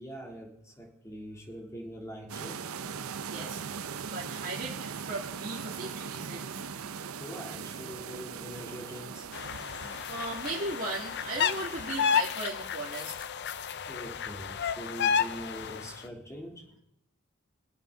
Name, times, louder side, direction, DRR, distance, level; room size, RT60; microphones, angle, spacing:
voice 1, 0.0-2.6 7.2-10.1 13.9-16.8, equal, 15° left, -1 dB, 2.8 m, -43 dB
sound 1, 2.3-12.2, right 6 dB, 85° right, 0.6 m, -40 dB
voice 2, 3.3-3.6 4.1-6.6 10.1-13.3, right 2 dB, 45° right, -5 dB, 2.1 m, -37 dB
sound 2, 9.3-16.0, left 7 dB, 55° left, 0.5 m, -31 dB
23.5 x 8.5 x 3.9 m, 0.79 s
head